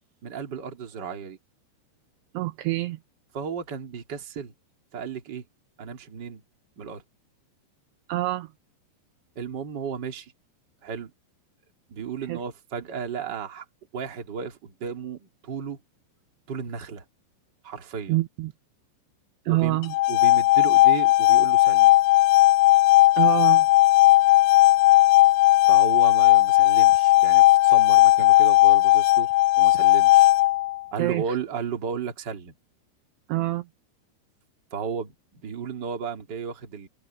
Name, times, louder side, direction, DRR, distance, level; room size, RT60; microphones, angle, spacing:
voice 1, 0.2-1.4 3.3-4.5 4.9-5.4 5.8-6.4 6.8-7.0 9.4-10.3 10.8-11.1 11.9-13.7 13.9-15.8 16.5-17.0 17.6-18.2 19.4-19.8 20.1-21.9 25.7-29.3 29.6-30.3 30.9-32.6 34.7-36.9, right 6 dB, 30° right, 2.2 m, -34 dB
voice 2, 2.3-3.0 8.1-8.5 12.3-12.4 18.1-18.5 19.5-19.9 23.2-23.7 31.0-31.2 33.3-33.6, right 17 dB, 80° right, 2.6 m, -26 dB
sound 1, 19.8-30.8, left 17 dB, 90° left, 2.3 m, -17 dB
omnidirectional pair, 5.3 m